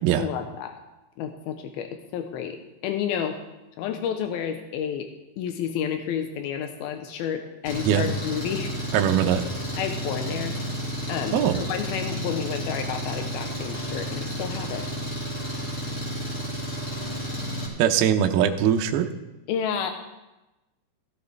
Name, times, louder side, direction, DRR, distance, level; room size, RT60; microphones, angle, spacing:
voice 1, 0.2-0.8 1.2-2.6 2.8-3.4 3.8-5.1 5.4-8.7 9.8-10.5 11.1-14.9 19.5-19.9, left 8 dB, 85° left, 5 dB, 2.2 m, -30 dB
Engine, 7.6-17.7, equal, 30° left, 1.9 m, -31 dB
voice 2, 8.9-9.4 11.3-11.6 17.8-19.1, right 9 dB, 80° right, 5 dB, 2.2 m, -21 dB
16.0 x 12.5 x 3.3 m, 1.0 s
omnidirectional pair, 5.2 m